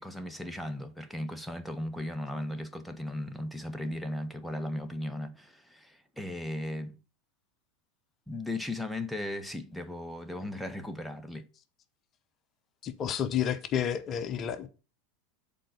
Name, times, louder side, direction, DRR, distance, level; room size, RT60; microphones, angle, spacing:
voice 1, 0.0-7.0 8.3-11.5, left 1 dB, ahead, 1.0 m, -37 dB
voice 2, 12.8-14.7, left 9 dB, 40° left, 0.9 m, -30 dB
7.7 x 4.4 x 6.6 m
hypercardioid pair, 95°, 0 cm